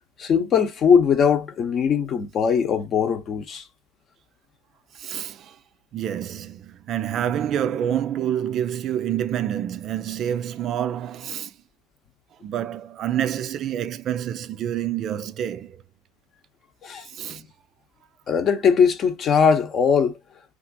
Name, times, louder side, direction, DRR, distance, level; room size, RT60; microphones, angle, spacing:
voice 1, 0.2-3.6 16.8-17.4 18.3-20.2, left 6 dB, 40° left, 0.7 m, -20 dB
voice 2, 4.9-5.6 5.9-11.5 12.4-15.8 17.1-17.4, right 10 dB, 45° right, 0.3 m, -27 dB
2.9 x 2.5 x 2.6 m
hypercardioid pair, 85°, 0 cm